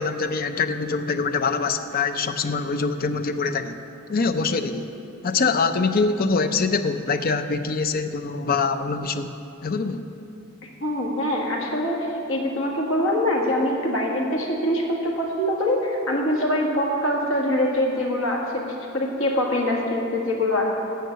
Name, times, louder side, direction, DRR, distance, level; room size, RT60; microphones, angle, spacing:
voice 1, 0.0-3.8 4.1-4.9 5.2-9.3 9.6-10.0, left 4 dB, 45° left, 9 dB, 0.5 m, -24 dB
voice 2, 10.8-20.6, left 1 dB, 70° left, -1 dB, 1.6 m, -24 dB
9.2 x 6.6 x 7.9 m, 2.7 s
head